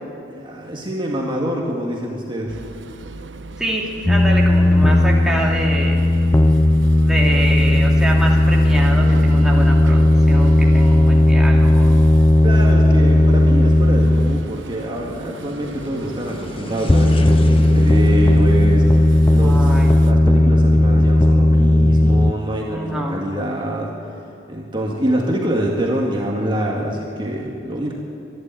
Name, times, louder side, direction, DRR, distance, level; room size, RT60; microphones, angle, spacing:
voice 1, 0.3-2.6 12.4-23.9 24.5-27.9, right 1 dB, 25° right, -1 dB, 2.1 m, -25 dB
sound 1, 2.5-20.1, right 2 dB, 70° right, 1.0 m, -36 dB
voice 2, 3.6-6.1 7.0-12.0 16.6-16.9 19.4-19.9 22.7-23.2, right 1 dB, 5° right, -2 dB, 2.6 m, -26 dB
sound 2, 4.1-14.7 16.9-22.3, left 1 dB, 15° left, 0.4 m, -14 dB
sound 3, 9.8-20.1, left 1 dB, 30° left, 1.3 m, -37 dB
24.5 x 12.0 x 9.2 m, 2.7 s
head